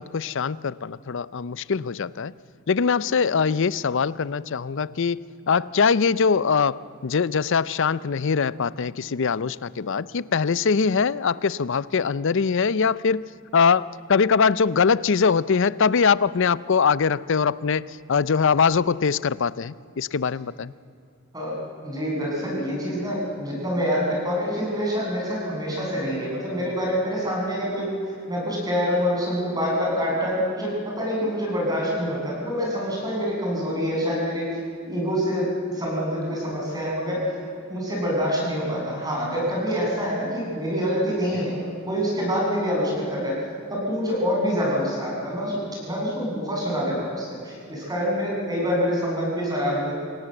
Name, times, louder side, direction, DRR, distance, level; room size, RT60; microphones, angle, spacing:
voice 1, 0.0-2.3 2.7-5.2 5.5-13.2 13.5-20.7 41.3-41.4, left 5 dB, 60° left, 19 dB, 0.5 m, -22 dB
voice 2, 21.8-34.6 34.8-43.4 43.7-49.9, equal, 20° right, -3 dB, 7.1 m, -26 dB
27.0 x 17.5 x 7.8 m, 2.6 s
head